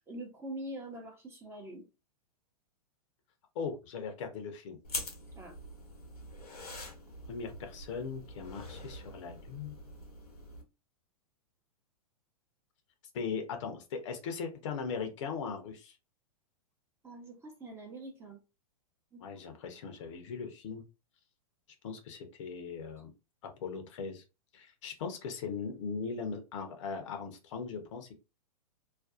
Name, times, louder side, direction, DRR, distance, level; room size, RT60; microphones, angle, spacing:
voice 1, 0.1-1.8 5.3-5.5 17.0-18.4 19.1-19.2, right 1 dB, 15° right, 0.7 m, -44 dB
voice 2, 3.6-4.8 7.3-9.7 13.1-16.0 19.2-20.8 21.8-23.1 23.6-24.2 24.5-28.1, left 5 dB, 55° left, 0.6 m, -39 dB
sound 1, 4.8-10.6, left 2 dB, 85° left, 0.8 m, -44 dB
2.4 x 2.2 x 2.4 m
hypercardioid pair, 110°, 19 cm